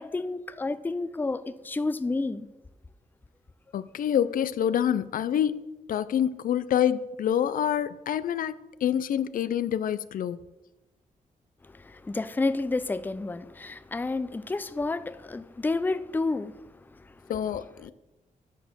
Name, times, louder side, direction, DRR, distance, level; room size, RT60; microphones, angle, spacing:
voice 1, 0.0-2.5 11.7-16.5 16.9-17.1, left 3 dB, 15° left, 0.4 m, -30 dB
voice 2, 3.7-10.4 17.3-17.9, left 9 dB, 75° left, 0.4 m, -27 dB
10.5 x 4.2 x 6.7 m
wide cardioid pair, 115°, 14 cm